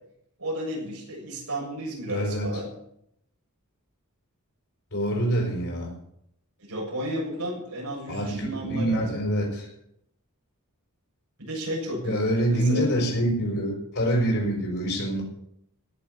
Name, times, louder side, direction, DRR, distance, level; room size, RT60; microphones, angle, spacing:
voice 1, 0.4-2.7 6.7-9.1 11.4-12.9, right 1 dB, 90° right, -3 dB, 7.2 m, -32 dB
voice 2, 2.1-2.5 4.9-5.9 8.1-9.7 12.0-15.2, right 1 dB, 60° left, -2 dB, 5.4 m, -26 dB
17.0 x 7.1 x 9.3 m, 0.73 s
head